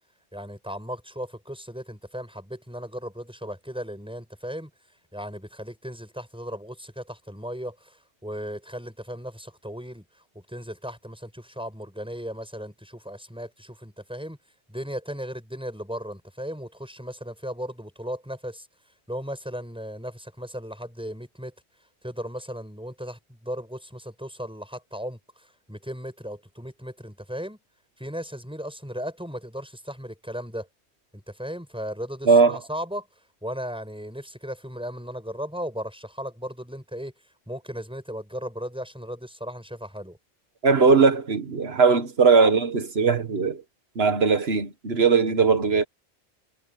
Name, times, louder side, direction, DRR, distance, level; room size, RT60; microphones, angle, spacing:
voice 1, 0.3-4.7 5.1-10.0 10.3-14.4 14.7-18.7 19.1-21.5 22.0-27.6 28.0-30.7 31.1-33.1 33.4-37.1 37.5-40.2, equal, 5° right, 6.9 m, -36 dB
voice 2, 32.2-32.6 40.6-43.6 43.9-45.8, right 5 dB, 65° right, 1.8 m, -19 dB
omnidirectional pair, 1.1 m